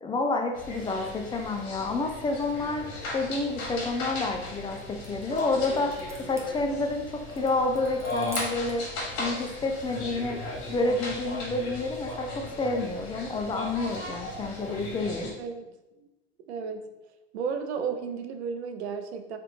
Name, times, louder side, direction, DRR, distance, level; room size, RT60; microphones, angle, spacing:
voice 1, 0.0-2.9 3.1-5.9 6.2-8.9 9.2-10.4 10.7-15.3, left 2 dB, 15° left, 4 dB, 0.3 m, -29 dB
sound 1, 0.5-15.3, left 2 dB, 55° left, 1.1 m, -37 dB
sound 2, 4.3-8.9, right 1 dB, 10° right, 0.7 m, -45 dB
voice 2, 15.4-16.1 16.5-16.9 17.3-19.4, right 6 dB, 90° right, 7 dB, 0.5 m, -33 dB
3.0 x 2.4 x 3.4 m, 1.0 s
hypercardioid pair, 90°, 32 cm